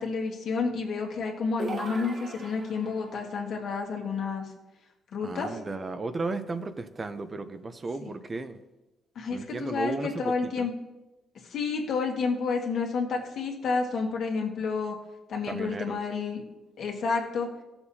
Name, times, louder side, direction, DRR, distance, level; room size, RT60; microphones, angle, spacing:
voice 1, 0.0-4.5 5.1-5.5 8.0-8.1 9.1-10.7 11.4-14.9 15.3-16.4 16.8-17.5, left 4 dB, 65° left, 0 dB, 1.7 m, -30 dB
sound 1, 1.6-3.1, right 2 dB, 45° right, 1.2 m, -37 dB
voice 2, 5.2-8.6 9.3-10.7 15.5-16.1, right 3 dB, 30° right, 9 dB, 0.7 m, -34 dB
14.0 x 7.0 x 2.8 m, 1.0 s
cardioid pair, 90°, 0 cm